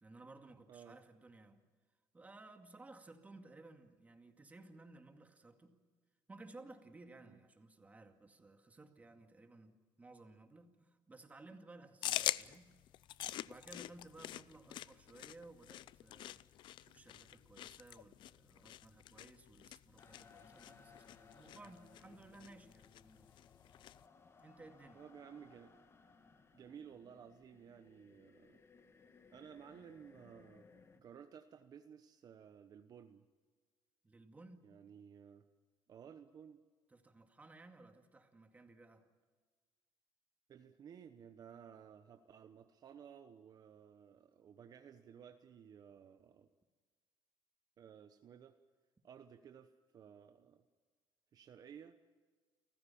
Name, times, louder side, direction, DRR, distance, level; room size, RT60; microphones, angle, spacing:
voice 1, 0.0-1.6 2.1-5.8 6.3-12.7 13.4-23.3 24.4-25.0 34.0-34.7 36.9-39.0, right 2 dB, 15° right, 6 dB, 2.2 m, -58 dB
sound 1, 12.0-24.0, left 13 dB, 65° left, 0.5 m, -45 dB
sound 2, 20.0-31.0, left 5 dB, 30° left, 1.8 m, -63 dB
voice 2, 24.9-25.8 26.5-28.6 29.3-33.3 34.6-35.4 35.9-36.6 40.5-46.5 47.8-48.5 49.0-50.6 51.3-52.0, right 8 dB, 45° right, 8 dB, 1.1 m, -56 dB
29.5 x 15.0 x 7.2 m, 1.5 s
cardioid pair, 130°, 9 cm